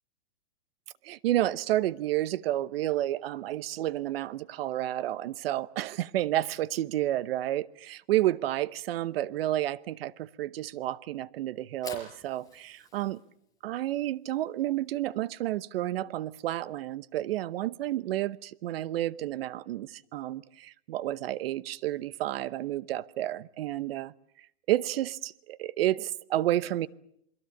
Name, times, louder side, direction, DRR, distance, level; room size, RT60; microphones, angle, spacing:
voice 1, 1.0-13.2 13.6-24.1 24.7-26.9, right 14 dB, 65° right, 1.0 m, -30 dB
Fire, 11.6-17.7, left 5 dB, 10° left, 5.1 m, -52 dB
28.5 x 22.0 x 7.2 m
supercardioid pair, 150°, 32 cm